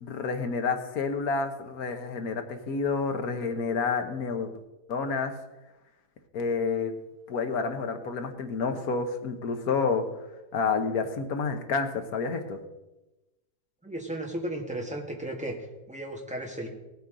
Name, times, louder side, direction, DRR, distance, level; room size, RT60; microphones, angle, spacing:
voice 1, 0.0-4.5 4.9-5.3 6.3-6.9 7.3-10.0 10.5-12.6, left 4 dB, 65° left, 7 dB, 1.5 m, -29 dB
voice 2, 13.8-15.5 15.9-16.7, right 1 dB, 5° right, 0 dB, 1.5 m, -34 dB
18.0 x 8.5 x 3.9 m, 1.0 s
omnidirectional pair, 1.7 m